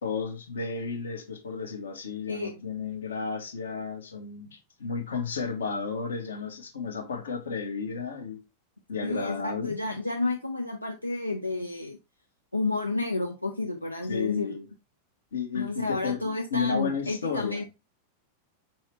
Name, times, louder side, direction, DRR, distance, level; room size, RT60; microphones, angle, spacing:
voice 1, 0.0-8.4 8.9-9.8 14.1-14.7 15.3-17.6, left 5 dB, 65° left, 0.9 m, -33 dB
voice 2, 9.0-12.0 12.5-14.6 15.5-17.6, left 2 dB, 85° left, 0.4 m, -31 dB
4.8 x 2.8 x 3.1 m
figure-of-eight pair, 90°, 0 cm